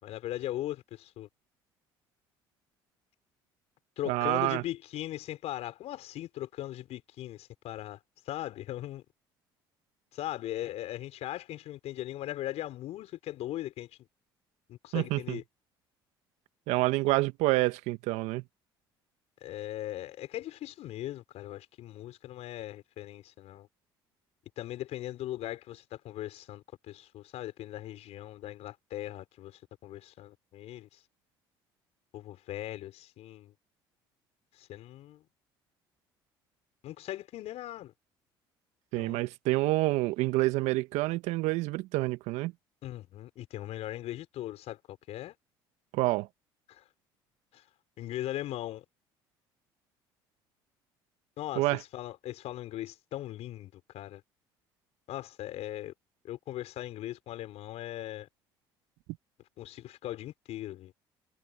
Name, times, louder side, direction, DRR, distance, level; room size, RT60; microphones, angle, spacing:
voice 1, 0.0-1.3 4.0-8.0 8.2-9.0 10.1-13.9 14.7-15.4 19.4-23.7 24.6-31.0 32.1-33.5 34.5-35.2 36.8-37.9 39.0-39.2 42.8-45.3 46.7-46.9 47.5-47.6 48.0-48.8 51.4-54.2 55.1-55.9 56.2-58.3 59.6-60.9, left 14 dB, 65° left, 5.1 m, -39 dB
voice 2, 4.1-4.6 14.9-15.4 16.7-18.4 38.9-42.5 45.9-46.3 51.5-51.8, right 20 dB, 70° right, 1.7 m, -28 dB
hypercardioid pair, 60°, 12 cm